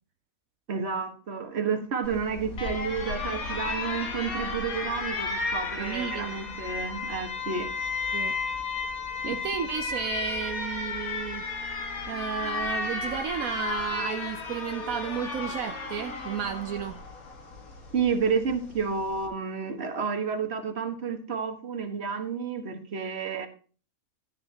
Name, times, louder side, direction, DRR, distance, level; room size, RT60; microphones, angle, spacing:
voice 1, 0.7-7.7 9.2-9.4 17.9-23.5, right 5 dB, 50° right, 7 dB, 1.6 m, -30 dB
Alarm, 2.0-19.3, left 4 dB, 75° left, 2.1 m, -34 dB
voice 2, 5.8-6.5 8.1-8.4 9.3-11.4 12.1-17.0, right 7 dB, 75° right, 7 dB, 1.2 m, -33 dB
Wind instrument woodwind instrument, 11.4-13.6 13.9-17.0, equal, 10° left, 0.8 m, -47 dB
13.5 x 9.8 x 2.8 m, 0.38 s
omnidirectional pair, 1.5 m